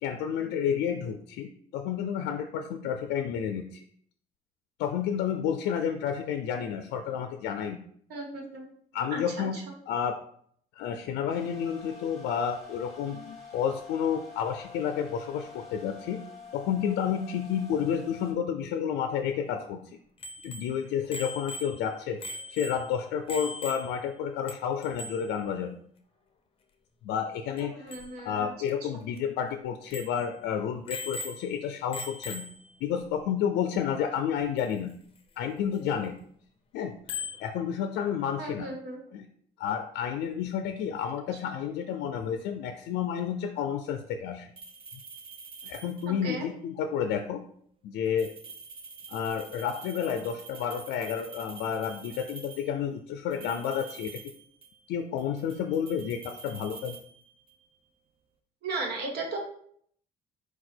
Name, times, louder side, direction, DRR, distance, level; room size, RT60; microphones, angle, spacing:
voice 1, 0.0-3.8 4.8-7.8 8.9-10.2 10.8-16.2 16.5-20.0 20.4-25.8 27.0-28.0 28.2-32.4 32.8-34.9 35.4-36.1 36.7-36.9 37.4-38.7 39.1-39.3 39.6-44.5 45.6-47.4 47.8-48.3 49.1-54.2 54.9-57.0, left 8 dB, 80° left, 6 dB, 0.4 m, -30 dB
voice 2, 8.1-8.7 9.1-9.6 27.6-28.5 38.4-39.0 46.2-46.4 58.6-59.4, right 3 dB, 70° right, 1 dB, 1.2 m, -36 dB
sound 1, 11.3-18.3, left 5 dB, ahead, 1.7 m, -47 dB
Bicycle bell, 20.2-24.2 24.5-24.6 24.8-25.3 27.6-27.7 27.9-28.1 28.7-28.8 29.2-29.3 29.9-30.3 30.9-31.6 31.9-32.7 34.6-34.7 37.1-37.5, left 3 dB, 35° left, 0.6 m, -39 dB
Small Bell Ringing, 44.6-46.3 48.1-52.8 53.3-54.9 55.2-57.6, right 5 dB, 35° right, 0.5 m, -47 dB
4.8 x 2.3 x 4.3 m, 0.63 s
cardioid pair, 110°, 17 cm